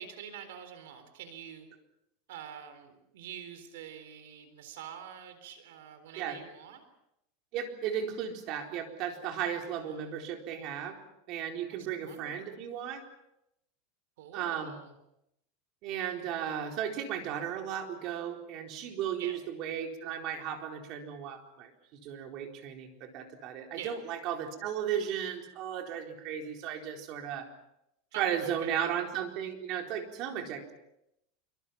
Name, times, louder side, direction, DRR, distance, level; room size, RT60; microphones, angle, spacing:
voice 1, 0.0-1.7 2.3-6.8 9.8-10.1 11.7-12.6 14.2-14.9 19.2-19.4 23.7-24.0 28.1-28.9, right 8 dB, 80° right, 9 dB, 3.9 m, -46 dB
voice 2, 7.5-11.0 11.3-13.0 14.3-14.7 15.8-27.5 28.2-30.7, right 9 dB, 50° right, 4 dB, 4.2 m, -35 dB
26.5 x 24.5 x 5.9 m, 0.81 s
supercardioid pair, 140°, 0 cm